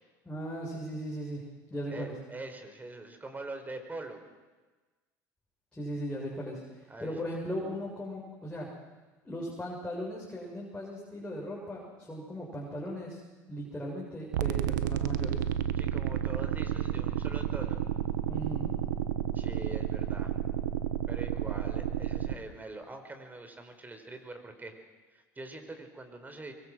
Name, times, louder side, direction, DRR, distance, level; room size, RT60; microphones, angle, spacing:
voice 1, 0.2-1.4 1.7-2.1 5.7-8.7 9.2-13.2 13.5-15.4 18.3-18.7, equal, 10° left, -4 dB, 7.4 m, -38 dB
voice 2, 1.9-4.2 6.9-7.3 15.8-17.8 19.3-20.4 21.1-24.7 25.1-26.5, right 2 dB, 20° right, 6 dB, 4.7 m, -43 dB
sound 1, 14.3-22.3, right 10 dB, 85° right, 1.0 m, -31 dB
24.0 x 23.5 x 6.3 m, 1.2 s
hypercardioid pair, 85°, 10 cm